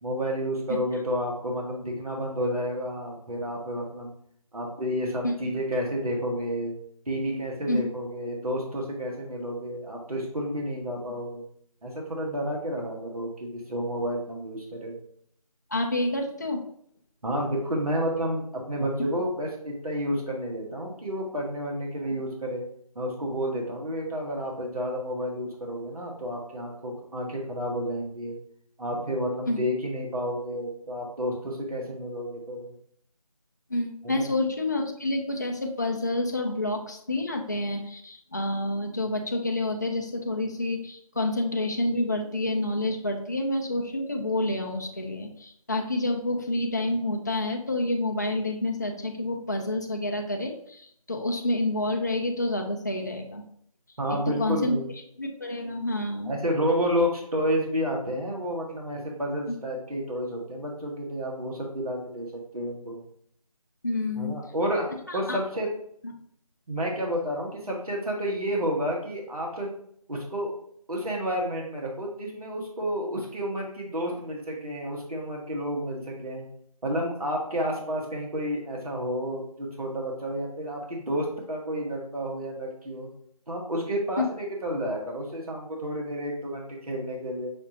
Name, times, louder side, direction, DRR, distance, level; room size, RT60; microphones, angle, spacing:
voice 1, 0.0-4.1 4.5-6.7 7.1-11.4 11.8-14.9 17.2-22.6 22.9-28.3 28.8-32.7 34.0-34.3 54.0-54.9 56.2-62.3 62.5-63.0 64.2-64.9 65.1-65.7 66.7-69.7 70.1-70.5 70.9-76.5 76.8-83.1 83.5-87.5, equal, 75° right, -1 dB, 1.4 m, -30 dB
voice 2, 15.7-16.6 29.4-29.6 33.7-53.4 54.3-54.8 55.2-56.3 63.8-64.4 65.1-65.4 66.0-66.1 84.2-84.3, left 2 dB, 30° left, 3 dB, 0.4 m, -28 dB
5.8 x 2.6 x 2.9 m, 0.65 s
figure-of-eight pair, 165°, 19 cm